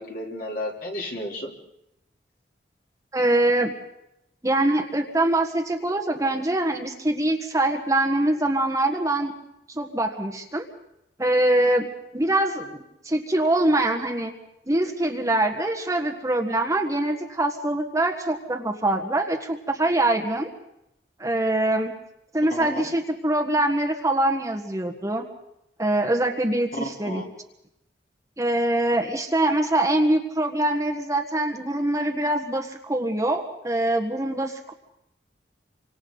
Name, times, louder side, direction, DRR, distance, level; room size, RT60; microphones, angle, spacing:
voice 1, 0.0-1.5 22.5-22.9 26.7-27.3, left 1 dB, 55° left, -1 dB, 3.8 m, -32 dB
voice 2, 3.1-3.7 4.4-9.3 9.7-10.7 11.2-11.9 12.1-14.3 14.7-20.5 21.2-21.9 22.3-25.2 25.8-27.2 28.4-34.7, right 1 dB, 20° right, 3 dB, 1.5 m, -24 dB
29.5 x 25.0 x 4.0 m, 0.83 s
head